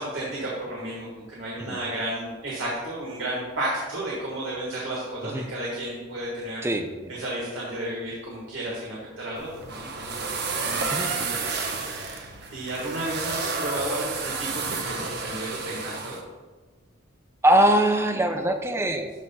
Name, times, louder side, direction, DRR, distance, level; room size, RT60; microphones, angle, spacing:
voice 1, 0.0-6.7 7.1-16.2, right 1 dB, 75° right, -4 dB, 1.5 m, -33 dB
voice 2, 6.6-7.1 10.9-11.1 17.4-19.1, right 1 dB, 15° right, 6 dB, 0.5 m, -22 dB
sound 1, 9.4-16.2, right 4 dB, 55° right, 0.8 m, -31 dB
12.5 x 5.6 x 2.2 m, 1.3 s
head